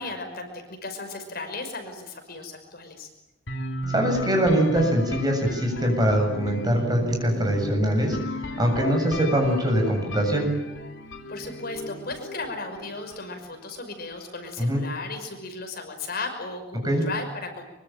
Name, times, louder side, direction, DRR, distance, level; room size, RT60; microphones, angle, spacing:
voice 1, 0.0-3.1 11.3-17.6, left 3 dB, 50° left, 5 dB, 5.7 m, -35 dB
sound 1, 3.5-13.3, equal, 70° left, 2.9 m, -35 dB
voice 2, 3.9-8.2 8.6-10.5 14.6-14.8 16.8-17.0, equal, 20° right, 3 dB, 7.6 m, -23 dB
24.5 x 23.5 x 9.1 m, 0.95 s
head